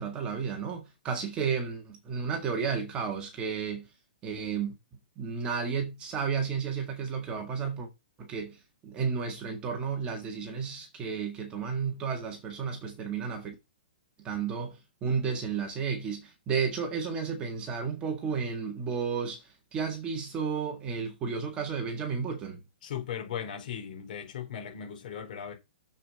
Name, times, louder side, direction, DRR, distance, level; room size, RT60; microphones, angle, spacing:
voice 1, 0.0-3.9 4.2-4.7 5.2-7.9 8.2-13.6 14.2-22.6, right 6 dB, 15° right, 1.7 m, -32 dB
voice 2, 22.8-25.5, left 8 dB, 55° left, 3.6 m, -37 dB
7.3 x 6.6 x 5.1 m
hypercardioid pair, 160°, 6 cm